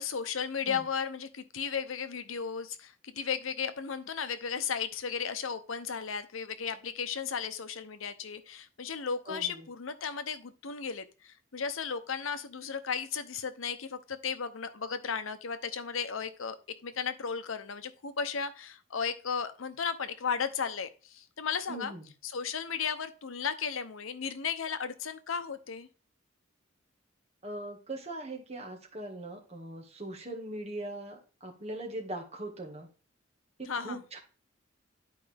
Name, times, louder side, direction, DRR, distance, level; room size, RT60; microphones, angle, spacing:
voice 1, 0.0-16.6 16.8-21.9 22.2-25.9 33.7-34.0, left 6 dB, 90° left, 11 dB, 0.8 m, -35 dB
voice 2, 9.3-9.6 21.7-22.1 27.4-32.9 33.6-34.2, right 1 dB, 30° right, 0 dB, 1.8 m, -40 dB
11.0 x 4.7 x 3.4 m, 0.35 s
head